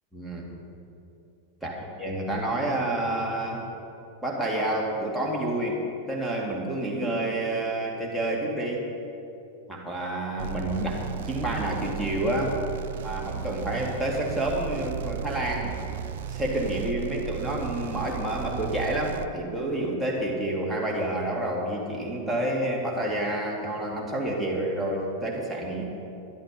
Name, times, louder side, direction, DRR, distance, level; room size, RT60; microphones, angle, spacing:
voice 1, 0.1-0.5 1.6-3.7 4.2-8.9 9.7-12.6 13.0-15.7 16.3-25.8, right 1 dB, ahead, -4 dB, 2.4 m, -29 dB
sound 1, 10.4-19.3, right 8 dB, 55° right, 0.4 m, -35 dB
12.5 x 11.5 x 5.3 m, 2.8 s
figure-of-eight pair, 90°, 0 cm